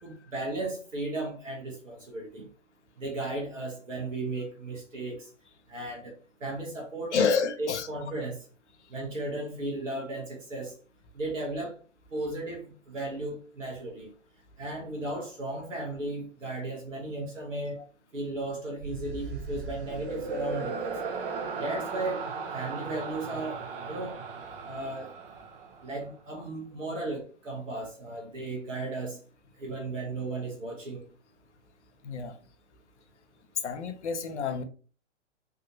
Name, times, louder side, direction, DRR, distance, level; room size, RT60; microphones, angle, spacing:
voice 1, 0.0-2.5 3.0-5.3 5.7-6.1 6.4-7.3 7.6-8.5 8.9-10.7 11.1-11.7 12.1-14.1 14.6-17.8 18.1-21.2 21.6-24.2 24.6-25.1 25.8-29.2 29.6-31.1, right 2 dB, 90° right, 1.0 m, -35 dB
voice 2, 7.1-7.9 32.0-32.3 33.6-34.6, left 5 dB, 65° left, 0.7 m, -28 dB
sound 1, 18.8-26.2, right 4 dB, 45° right, 0.7 m, -37 dB
3.4 x 2.7 x 2.6 m
figure-of-eight pair, 115°, 37 cm